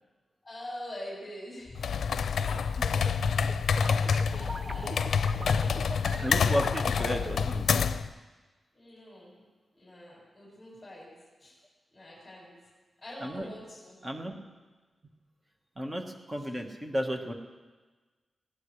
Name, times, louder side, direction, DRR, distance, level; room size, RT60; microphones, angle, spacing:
voice 1, 0.4-1.9 2.4-2.7 4.3-5.7 6.1-7.3 8.7-9.4 9.7-11.1 11.4-11.6 11.9-12.5 13.0-14.0 16.4-16.5, left 1 dB, 15° left, -6 dB, 6.1 m, -45 dB
sound 1, 1.8-8.1, left 6 dB, 85° left, 0.5 m, -27 dB
sound 2, 2.5-3.1 3.4-7.6, right 3 dB, 35° right, 0.6 m, -41 dB
voice 2, 6.2-7.7 13.2-13.5 14.0-14.4 15.8-17.3, equal, 15° right, 3 dB, 1.5 m, -33 dB
21.0 x 16.5 x 3.3 m, 1.3 s
wide cardioid pair, 145°, 0 cm